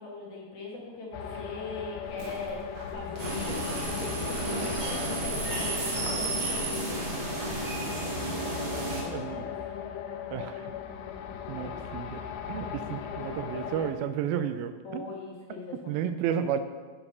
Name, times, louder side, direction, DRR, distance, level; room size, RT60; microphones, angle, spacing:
voice 1, 0.0-7.1 9.0-9.5 11.6-11.8 14.8-16.1, left 3 dB, 65° left, -3 dB, 2.2 m, -41 dB
sound 1, 1.1-13.9, left 8 dB, 80° left, 1.9 m, -38 dB
sound 2, 2.0-7.7, right 2 dB, 70° right, 2.5 m, -44 dB
sound 3, 3.2-9.0, right 2 dB, 40° right, 2.0 m, -32 dB
voice 2, 9.1-9.5 10.3-10.7 11.5-12.2 12.5-15.2 15.9-16.6, right 9 dB, 90° right, 10 dB, 2.4 m, -32 dB
8.6 x 4.8 x 5.3 m, 1.4 s
omnidirectional pair, 4.2 m